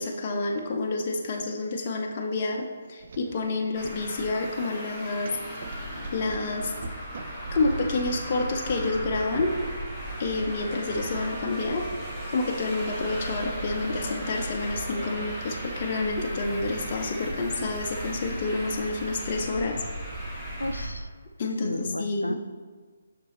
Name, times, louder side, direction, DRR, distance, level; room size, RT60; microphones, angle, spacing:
voice 1, 0.0-5.4 6.1-6.7 7.5-9.5 10.2-11.8 12.3-19.8 21.4-22.3, left 3 dB, 35° left, 0 dB, 0.6 m, -29 dB
sound 1, 3.0-21.1, right 4 dB, 50° right, 0.4 m, -40 dB
Traffic noise roadway noise, 3.7-20.9, equal, 10° right, 1.5 m, -37 dB
voice 2, 20.6-21.1 21.6-22.3, left 1 dB, 85° left, 9 dB, 0.4 m, -32 dB
6.8 x 5.9 x 3.3 m, 1.5 s
figure-of-eight pair, 140°, 0 cm